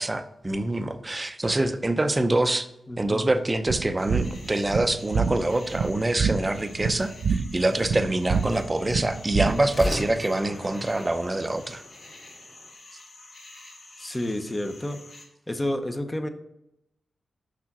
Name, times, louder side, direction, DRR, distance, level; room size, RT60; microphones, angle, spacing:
voice 1, 0.0-2.7 3.0-11.8, right 2 dB, 20° right, 9 dB, 0.6 m, -25 dB
voice 2, 2.9-3.3 14.0-15.0 15.5-16.3, left 1 dB, 15° left, 8 dB, 0.8 m, -30 dB
sound 1, 3.7-10.0, right 5 dB, 75° right, 0.4 m, -27 dB
sound 2, 3.8-5.6 9.6-12.7, left 1 dB, 35° left, 2.2 m, -37 dB
sound 3, 4.0-15.3, left 2 dB, 60° left, 2.3 m, -48 dB
6.1 x 5.8 x 6.0 m, 0.84 s
wide cardioid pair, 100°, 0 cm